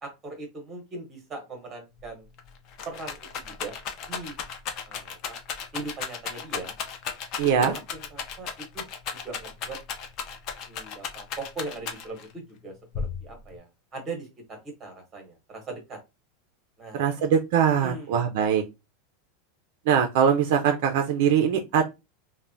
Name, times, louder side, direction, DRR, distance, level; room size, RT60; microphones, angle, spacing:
voice 1, 0.0-2.3 2.8-3.7 4.1-4.3 4.9-5.4 5.7-6.7 7.6-8.9 9.2-9.8 10.7-16.0 16.8-17.3 17.8-18.2, right 3 dB, 15° right, 3 dB, 0.9 m, -40 dB
Rattle, 2.0-2.1 2.4-12.3 12.9-13.6, left 6 dB, 30° left, 0.4 m, -35 dB
voice 2, 7.4-7.7 16.9-18.6 19.9-21.8, right 8 dB, 50° right, 5 dB, 0.4 m, -22 dB
3.2 x 2.1 x 2.5 m, 0.24 s
supercardioid pair, 180°, 0 cm